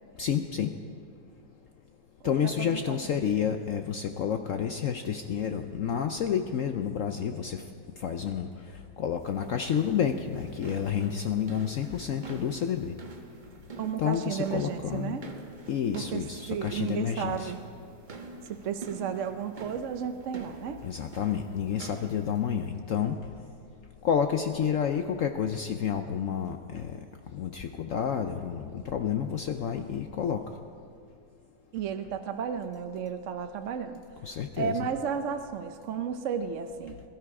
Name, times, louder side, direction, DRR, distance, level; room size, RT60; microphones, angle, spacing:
voice 1, 0.2-0.7 2.2-7.6 8.0-8.5 9.0-12.9 14.0-15.2 15.7-17.5 20.8-23.2 24.0-27.0 27.3-30.4 34.2-34.9, left 8 dB, 65° left, 7 dB, 0.8 m, -29 dB
voice 2, 2.2-3.0 13.8-15.2 15.9-16.2 16.5-17.6 18.5-20.8 31.7-34.0 34.6-37.0, right 7 dB, 60° right, 7 dB, 0.8 m, -33 dB
sound 1, 9.2-22.7, right 3 dB, 35° right, 1.0 m, -46 dB
22.0 x 12.5 x 4.8 m, 2.3 s
omnidirectional pair, 1.9 m